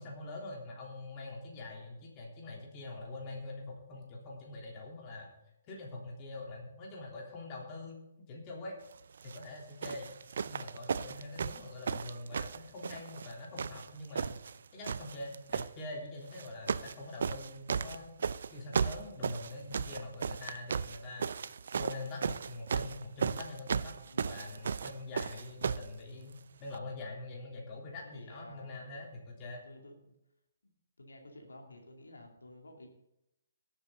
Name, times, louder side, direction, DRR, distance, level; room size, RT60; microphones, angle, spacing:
voice 1, 0.0-5.3 5.6-8.0 8.3-8.8 9.2-10.1 10.4-14.4 14.7-18.1 18.5-21.3 21.7-29.6, left 2 dB, 30° left, -1 dB, 3.4 m, -44 dB
sound 1, 9.2-9.4 9.8-13.3 13.6-14.6 14.8-15.7 16.3-17.0 17.2-25.9 26.7-26.8, right 6 dB, 60° right, 0.5 m, -35 dB
voice 2, 24.0-24.7 28.1-29.0 29.6-30.1 31.0-32.9, left 1 dB, 80° left, 2 dB, 2.5 m, -53 dB
18.0 x 8.0 x 3.9 m, 0.84 s
figure-of-eight pair, 130°, 0 cm